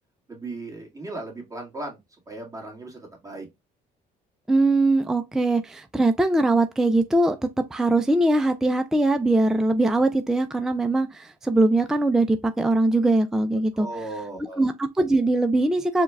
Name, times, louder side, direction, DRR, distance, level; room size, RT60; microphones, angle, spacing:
voice 1, 0.3-2.0 2.3-3.5 13.7-14.7, right 2 dB, 20° right, 1.7 m, -36 dB
voice 2, 4.5-7.4 7.7-13.9 14.6-16.0, right 2 dB, 5° right, 0.4 m, -21 dB
4.6 x 2.3 x 3.3 m
cardioid pair, 110°, 17 cm